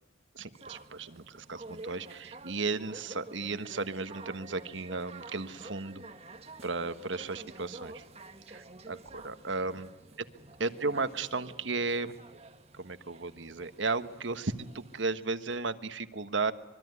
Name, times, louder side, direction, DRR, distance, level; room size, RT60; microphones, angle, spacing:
voice 1, 0.3-6.0 6.6-8.0 8.5-9.9 10.6-12.2 12.7-16.5, right 3 dB, 80° right, 11 dB, 1.4 m, -34 dB
sound 1, 0.5-15.0, right 2 dB, 35° right, 1.8 m, -50 dB
25.0 x 23.0 x 9.7 m, 1.1 s
head